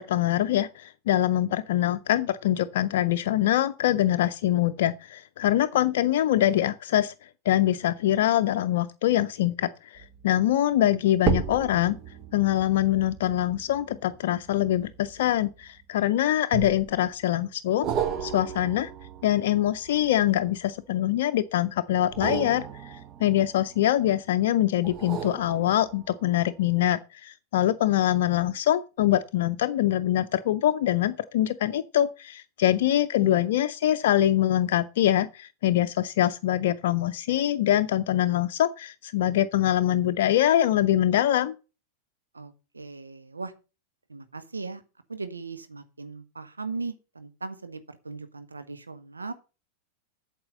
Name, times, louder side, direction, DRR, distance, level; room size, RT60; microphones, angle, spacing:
voice 1, 0.0-12.0 12.3-17.9 18.2-18.9 19.2-41.6, left 12 dB, 55° left, 0.5 m, -24 dB
sound 1, 10.0-10.3 11.2-15.8 16.5-17.1 17.8-20.8 22.0-24.1 24.8-26.3 26.7-26.8, right 8 dB, 35° right, 1.1 m, -34 dB
voice 2, 33.2-33.5 42.3-43.5 44.1-44.8 45.1-49.3, right 3 dB, 80° right, 0.9 m, -38 dB
8.7 x 7.5 x 5.3 m
figure-of-eight pair, 90°, 0 cm